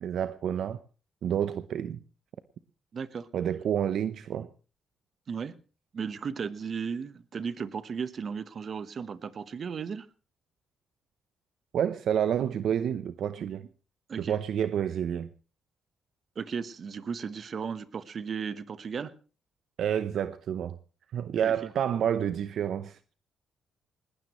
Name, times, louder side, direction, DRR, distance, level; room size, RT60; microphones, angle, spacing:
voice 1, 0.0-0.8 1.2-2.0 3.3-4.5 11.7-13.7 14.2-15.3 19.8-20.7 21.1-23.0, right 9 dB, 70° right, 0.8 m, -29 dB
voice 2, 2.9-3.3 5.3-5.5 5.9-10.1 14.1-14.4 16.4-19.1 21.4-21.7, right 6 dB, 50° right, 1.1 m, -35 dB
20.0 x 18.5 x 3.1 m
cardioid pair, 90°, 0 cm